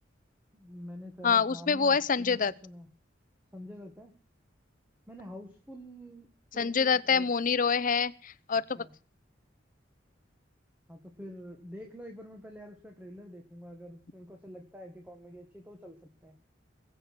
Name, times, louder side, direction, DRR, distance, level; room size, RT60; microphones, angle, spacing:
voice 1, 0.5-2.9 3.5-4.1 5.1-6.3 6.5-7.3 8.8-8.9 10.9-16.3, equal, 10° right, 3 dB, 1.9 m, -46 dB
voice 2, 1.2-2.5 6.6-8.8, left 5 dB, 45° left, 15 dB, 0.7 m, -26 dB
21.0 x 8.2 x 6.2 m, 0.42 s
head